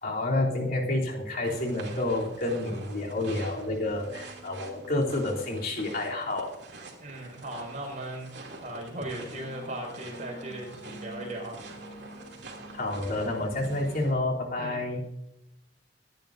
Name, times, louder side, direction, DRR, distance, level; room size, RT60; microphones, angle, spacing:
voice 1, 0.0-6.5 12.7-15.0, left 2 dB, 55° left, -3 dB, 3.2 m, -29 dB
sound 1, 1.4-14.1, right 2 dB, 70° right, 2.8 m, -46 dB
voice 2, 7.0-8.3 8.6-11.6 14.6-14.8, right 1 dB, 45° right, -1 dB, 5.5 m, -38 dB
sound 2, 9.0-14.0, equal, 40° left, 1.8 m, -48 dB
24.5 x 10.5 x 2.7 m, 0.90 s
head